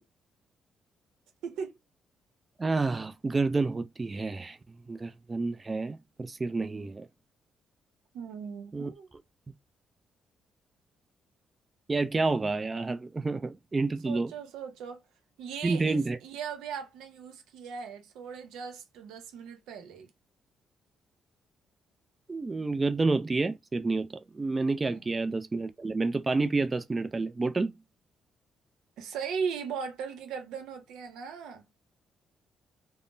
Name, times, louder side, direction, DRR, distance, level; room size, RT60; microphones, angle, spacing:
voice 1, 1.4-1.7 8.1-9.1 14.0-15.0 15.4-20.1 24.9-25.0 29.0-31.7, right 6 dB, 90° right, 0.7 m, -38 dB
voice 2, 2.6-4.6 4.9-7.1 8.7-8.9 11.9-14.3 15.6-16.2 22.3-27.7, right 3 dB, 25° right, 0.3 m, -29 dB
3.5 x 2.0 x 2.6 m
cardioid pair, 90°, 0 cm